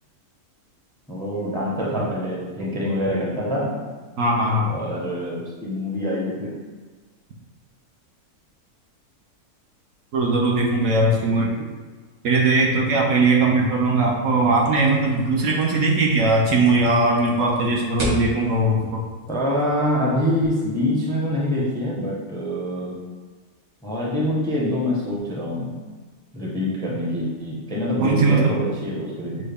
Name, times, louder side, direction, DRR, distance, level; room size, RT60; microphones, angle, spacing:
voice 1, 1.1-3.9 4.7-6.5 19.3-22.9 23.8-25.7 26.3-29.4, left 1 dB, 5° left, -6 dB, 0.5 m, -25 dB
voice 2, 4.2-4.7 10.1-11.5 12.2-19.0 28.0-28.5, right 2 dB, 65° right, -2 dB, 1.0 m, -19 dB
sound 1, 14.6-19.9, equal, 45° right, 0.5 m, -35 dB
6.2 x 2.2 x 3.5 m, 1.4 s
omnidirectional pair, 1.6 m